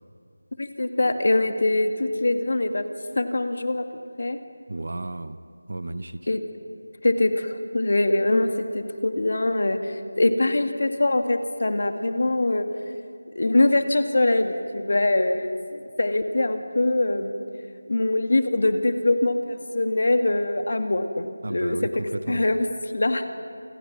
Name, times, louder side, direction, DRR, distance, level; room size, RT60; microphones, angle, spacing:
voice 1, 0.6-2.8 3.2-3.8 4.2-4.4 6.3-6.4 7.0-8.5 8.7-12.7 13.4-17.4 17.9-21.8 22.3-22.7 22.9-23.2, left 2 dB, 50° left, 6 dB, 2.0 m, -23 dB
voice 2, 4.7-5.4 5.7-6.2 21.4-22.4, right 2 dB, 50° right, 11 dB, 1.1 m, -32 dB
29.0 x 27.5 x 6.1 m, 2.3 s
figure-of-eight pair, 175°, 0 cm